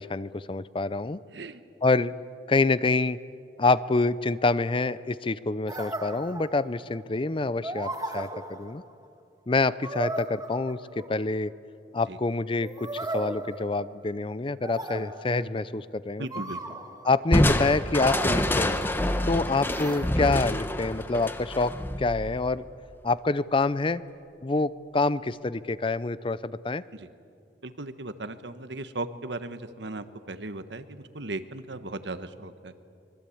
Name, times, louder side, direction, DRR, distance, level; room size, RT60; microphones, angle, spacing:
voice 1, 0.0-1.2 1.8-2.1 2.5-3.2 3.6-8.8 9.5-11.5 11.9-16.3 17.0-18.8 19.3-21.7 22.0-22.6 23.0-24.0 24.4-26.8, left 3 dB, 30° left, 17 dB, 0.5 m, -26 dB
sound 1, 5.7-6.9 7.6-9.0 9.8-11.3 12.6-14.2 14.6-15.6 16.3-17.2 18.0-19.2 19.7-20.1, right 2 dB, 20° right, 1.7 m, -36 dB
voice 2, 16.2-16.7 26.9-27.1 27.6-32.7, right 2 dB, 80° right, 10 dB, 1.3 m, -37 dB
Crushing, 17.3-22.7, left 1 dB, 10° left, 1.0 m, -27 dB
25.0 x 22.5 x 8.6 m, 2.5 s
head